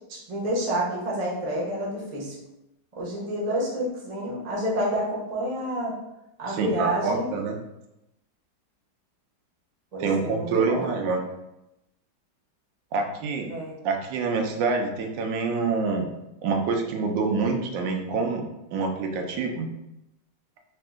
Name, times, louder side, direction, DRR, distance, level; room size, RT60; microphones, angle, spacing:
voice 1, 0.1-2.3 3.0-5.9 6.4-7.3 9.9-10.9 13.5-13.8, right 1 dB, 35° right, -4 dB, 0.6 m, -28 dB
voice 2, 6.5-7.6 10.0-11.2 12.9-13.5 13.8-16.1 16.4-18.4 18.7-19.7, right 4 dB, 85° right, 3 dB, 1.3 m, -26 dB
3.6 x 2.4 x 3.5 m, 0.89 s
omnidirectional pair, 1.9 m